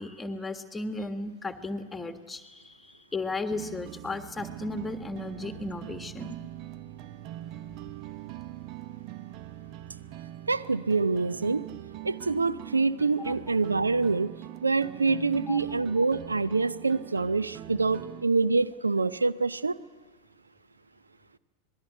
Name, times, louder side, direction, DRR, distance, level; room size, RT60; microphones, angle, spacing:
voice 1, 0.0-6.4 13.2-13.3 15.5-15.6, left 2 dB, 10° left, 8 dB, 1.6 m, -35 dB
sound 1, 3.5-18.3, right 14 dB, 40° right, 0.7 m, -42 dB
voice 2, 10.5-11.6 12.0-14.3 14.6-19.8, right 4 dB, 80° right, 16 dB, 0.6 m, -26 dB
26.5 x 20.5 x 7.9 m, 1.3 s
figure-of-eight pair, 90°, 0 cm